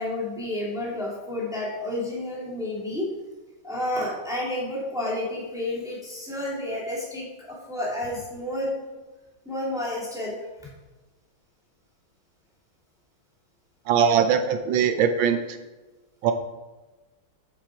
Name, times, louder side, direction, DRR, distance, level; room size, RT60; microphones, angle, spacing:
voice 1, 0.0-3.1 3.6-8.8 9.5-10.4, left 1 dB, ahead, -5 dB, 2.4 m, -30 dB
voice 2, 13.9-15.6 16.2-16.3, right 7 dB, 70° right, 7 dB, 1.4 m, -21 dB
8.7 x 7.3 x 4.7 m, 1.2 s
omnidirectional pair, 2.3 m